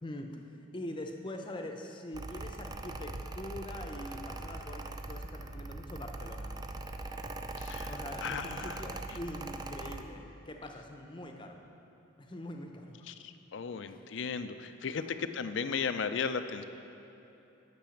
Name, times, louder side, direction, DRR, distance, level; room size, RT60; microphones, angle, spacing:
voice 1, 0.0-6.5 7.9-11.6 12.2-13.0 13.8-13.9 14.9-15.1, left 1 dB, 25° left, 3 dB, 0.7 m, -43 dB
Mechanical fan, 2.1-10.0, right 2 dB, 20° right, 0.3 m, -41 dB
voice 2, 7.6-8.8 13.0-15.0 15.3-16.6, left 6 dB, 60° left, 10 dB, 0.4 m, -36 dB
10.5 x 6.1 x 7.1 m, 2.9 s
head